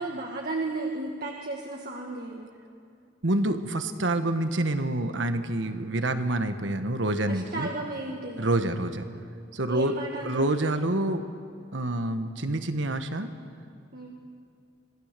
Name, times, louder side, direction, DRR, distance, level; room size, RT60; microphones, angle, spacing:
voice 1, 0.0-2.5 7.3-8.5 9.7-10.5 13.9-14.2, right 2 dB, 55° right, 0 dB, 1.6 m, -34 dB
voice 2, 3.2-7.7 8.4-9.1 9.5-9.9 10.2-11.2 11.7-13.3, right 1 dB, 80° right, 8 dB, 1.4 m, -27 dB
26.0 x 17.5 x 6.8 m, 2.4 s
head